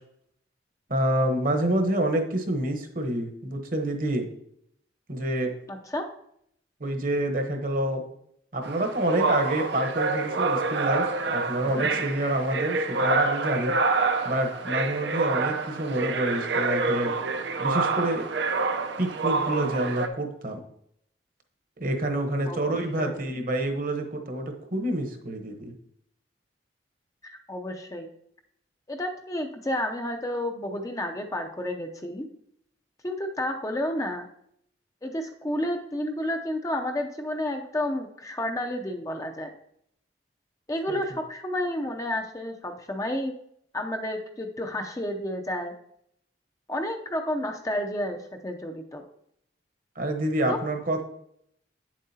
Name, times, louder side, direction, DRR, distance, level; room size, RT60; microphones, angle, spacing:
voice 1, 0.9-4.3 5.1-5.5 6.8-8.0 8.5-13.7 14.2-17.1 17.6-18.3 19.0-20.6 21.8-24.4 24.7-25.7 40.9-41.0 50.0-51.0, right 1 dB, 50° right, 4 dB, 1.0 m, -27 dB
voice 2, 5.7-6.1 11.8-12.0 22.5-23.3 27.2-28.1 28.9-32.3 33.0-34.2 35.0-39.5 40.7-43.3 43.7-45.7 46.7-48.2 48.4-49.0 50.5-50.6, left 1 dB, 20° left, 4 dB, 0.6 m, -31 dB
sound 1, 8.6-20.1, right 3 dB, 75° right, 0.7 m, -27 dB
9.0 x 7.4 x 2.8 m, 0.70 s
head